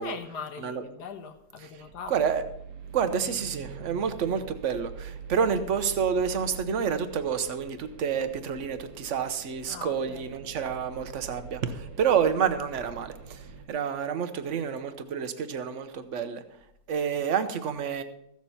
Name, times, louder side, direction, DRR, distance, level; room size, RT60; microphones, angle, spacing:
voice 1, 0.0-2.1 9.7-10.3, left 6 dB, 75° left, 7 dB, 1.7 m, -40 dB
sound 1, 1.8-13.7, right 6 dB, 75° right, 1.9 m, -44 dB
voice 2, 2.1-2.4 2.9-16.4 16.9-18.0, right 7 dB, 50° right, 10 dB, 1.1 m, -29 dB
15.0 x 7.5 x 5.6 m, 0.77 s
omnidirectional pair, 1.8 m